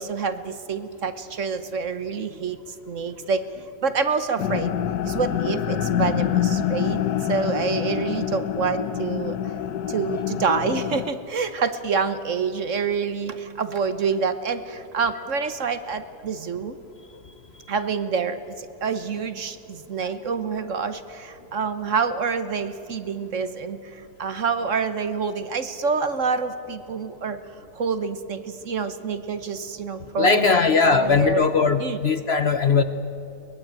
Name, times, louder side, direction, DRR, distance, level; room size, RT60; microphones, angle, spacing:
voice 1, 0.0-3.4 3.8-4.8 5.1-9.5 9.9-16.8 17.7-27.4 27.7-30.6 30.9-31.5 31.8-32.0, right 5 dB, 50° right, 11 dB, 1.2 m, -27 dB
sound 1, 4.4-11.1, left 10 dB, 65° left, 1.4 m, -26 dB
voice 2, 30.2-32.8, left 5 dB, 50° left, 11 dB, 0.8 m, -19 dB
23.5 x 20.0 x 8.8 m, 2.8 s
omnidirectional pair, 1.8 m